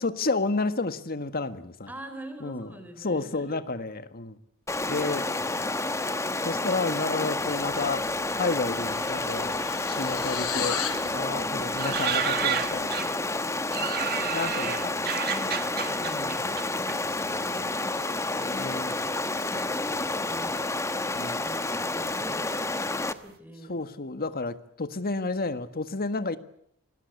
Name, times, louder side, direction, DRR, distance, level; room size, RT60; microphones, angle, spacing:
voice 1, 0.0-1.9 2.4-2.7 3.0-4.4 4.9-5.2 5.5-5.6 6.4-8.1 8.3-9.5 9.9-10.8 11.1-12.9 14.3-14.7 16.0-16.4 18.4-18.9 21.1-21.4 23.7-26.4, left 3 dB, 45° left, 10 dB, 1.7 m, -31 dB
voice 2, 1.9-3.6 4.9-6.0 10.9-12.1 13.8-14.7 15.0-16.5 16.8-18.7 19.2-20.6 21.3-23.8 25.0-25.1, right 1 dB, 10° right, 8 dB, 4.3 m, -44 dB
Stream, 4.7-23.1, left 2 dB, 15° left, 1.1 m, -30 dB
sound 1, 7.9-8.1 8.4-11.1, left 9 dB, 70° left, 4.5 m, -35 dB
sound 2, 11.8-13.3 13.7-17.6 17.8-18.7 19.4-19.9 20.2-20.3 20.5-22.8 23.1-23.2, right 9 dB, 45° right, 1.6 m, -32 dB
27.0 x 20.0 x 8.3 m, 0.70 s
head